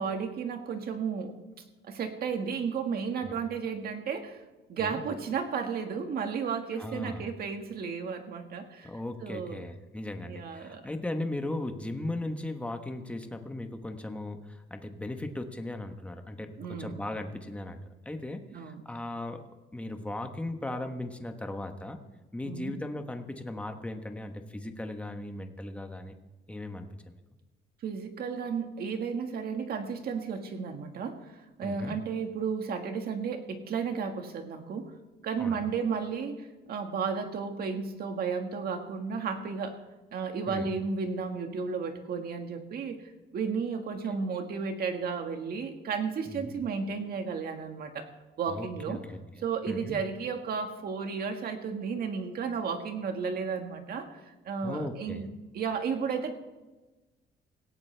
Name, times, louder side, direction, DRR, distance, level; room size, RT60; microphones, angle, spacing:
voice 1, 0.0-1.3 1.8-4.4 4.7-8.9 9.2-9.7 10.3-10.8 16.6-17.0 18.5-18.8 22.4-22.7 27.8-34.9 35.2-39.8 40.1-48.1 48.4-49.0 49.4-55.3 55.5-56.3, right 5 dB, 55° right, 5 dB, 1.8 m, -33 dB
voice 2, 6.8-7.3 8.8-19.4 19.7-22.0 22.3-26.1 26.5-27.2 31.6-32.0 35.4-35.6 40.5-40.7 46.3-46.5 48.5-49.2 49.7-50.0 54.6-55.3, left 1 dB, 5° left, 6 dB, 1.1 m, -37 dB
17.5 x 16.5 x 3.4 m, 1.2 s
cardioid pair, 165°, 19 cm